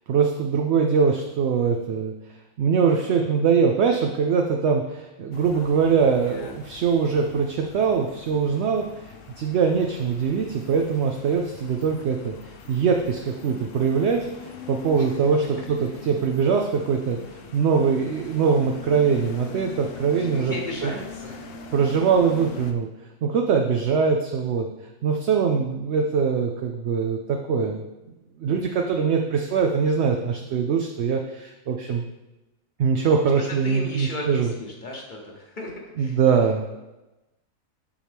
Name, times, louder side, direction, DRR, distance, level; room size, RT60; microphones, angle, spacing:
voice 1, 0.1-2.1 2.6-14.3 14.7-17.2 17.5-20.5 20.8-20.9 21.7-22.9 23.2-24.7 25.0-27.8 28.4-32.0 32.8-34.5 36.0-36.7, right 6 dB, 65° right, 3 dB, 0.8 m, -22 dB
sound 1, 5.3-22.7, left 6 dB, 70° left, 1.0 m, -43 dB
voice 2, 20.1-21.4 33.6-36.2, left 1 dB, 40° left, 0 dB, 1.2 m, -35 dB
7.1 x 5.9 x 3.5 m, 1.0 s
omnidirectional pair, 1.4 m